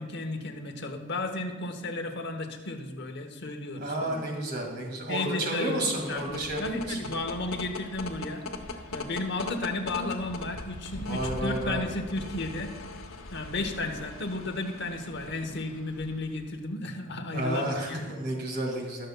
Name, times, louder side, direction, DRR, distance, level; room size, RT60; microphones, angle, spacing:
voice 1, 0.0-4.2 5.1-5.8 6.1-8.4 8.9-12.7 13.3-18.1, left 2 dB, 55° left, 5 dB, 1.0 m, -33 dB
voice 2, 3.8-7.0 10.9-11.8 17.3-19.1, right 1 dB, 50° right, 0 dB, 1.9 m, -31 dB
sound 1, 5.7-16.5, left 3 dB, 90° left, 0.9 m, -41 dB
20.0 x 6.7 x 2.2 m, 1.4 s
head